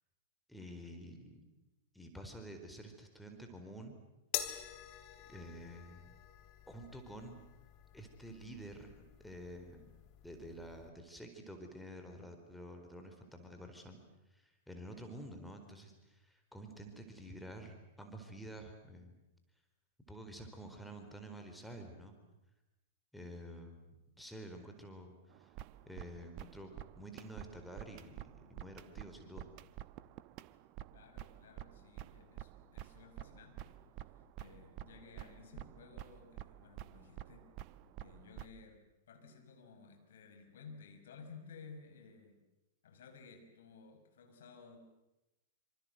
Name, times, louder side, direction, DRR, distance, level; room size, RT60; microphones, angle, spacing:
voice 1, 0.5-1.4 1.9-3.9 5.3-6.2 6.7-7.4 7.9-8.9 9.2-9.9 10.2-14.0 14.3-19.1 20.1-22.2 23.1-25.5 25.9-29.5, right 1 dB, ahead, 4 dB, 4.3 m, -50 dB
sound 1, 4.3-10.9, left 13 dB, 40° left, 2.7 m, -47 dB
sound 2, 25.3-38.5, right 13 dB, 40° right, 1.1 m, -50 dB
voice 2, 30.9-33.8 34.4-37.5 38.0-42.4 42.8-44.8, left 5 dB, 60° left, 6 dB, 5.4 m, -56 dB
27.5 x 26.0 x 7.9 m, 0.96 s
figure-of-eight pair, 100°, 0 cm